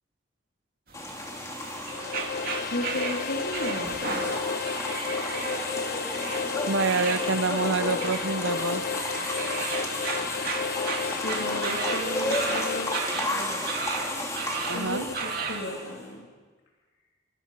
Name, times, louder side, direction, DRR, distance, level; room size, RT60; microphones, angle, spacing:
sound 1, 0.9-16.1, left 1 dB, 15° left, 3.0 m, -33 dB
sound 2, 0.9-15.6, right 4 dB, 45° right, 2.7 m, -35 dB
sound 3, 1.7-13.4, left 5 dB, 50° left, 0.7 m, -33 dB
voice 1, 2.7-4.4 11.2-13.6 14.7-16.3, left 1 dB, 75° left, -2 dB, 3.2 m, -35 dB
voice 2, 6.6-8.8 14.7-15.1, right 4 dB, 85° right, 11 dB, 1.1 m, -27 dB
29.5 x 26.5 x 5.7 m, 1.4 s
head